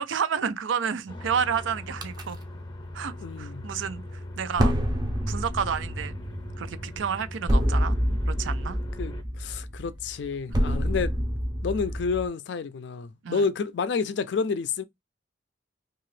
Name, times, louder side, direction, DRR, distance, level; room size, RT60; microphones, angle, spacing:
voice 1, 0.0-2.4 2.9-4.7 5.3-6.2 6.6-8.0 8.3-8.8 10.6-10.8 13.2-13.5, right 7 dB, 85° right, 0.5 m, -30 dB
sound 1, 1.1-9.2, left 1 dB, 25° left, 0.6 m, -41 dB
sound 2, 2.0-2.2 4.6-12.3, equal, 20° right, 0.5 m, -27 dB
voice 2, 3.2-3.6 9.0-11.2 11.6-14.8, left 5 dB, 65° left, 0.4 m, -29 dB
2.8 x 2.4 x 3.1 m
head